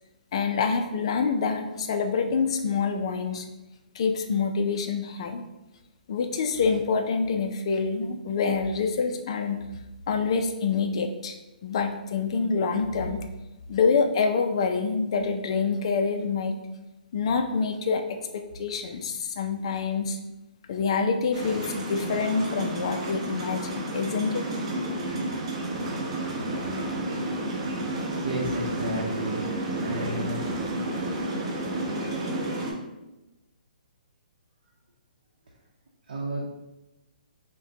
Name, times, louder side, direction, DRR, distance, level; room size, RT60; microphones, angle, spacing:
voice 1, 0.3-3.4 3.9-5.4 6.1-9.6 10.1-13.2 13.7-16.6 17.1-20.2 20.7-24.4, left 5 dB, 35° left, 5 dB, 0.4 m, -26 dB
sound 1, 21.3-32.7, right 1 dB, 40° right, 0.9 m, -31 dB
voice 2, 28.2-29.5 29.8-30.4 36.1-36.4, right 1 dB, 70° right, -4 dB, 0.8 m, -32 dB
5.8 x 2.2 x 2.8 m, 0.99 s
hypercardioid pair, 175°, 5 cm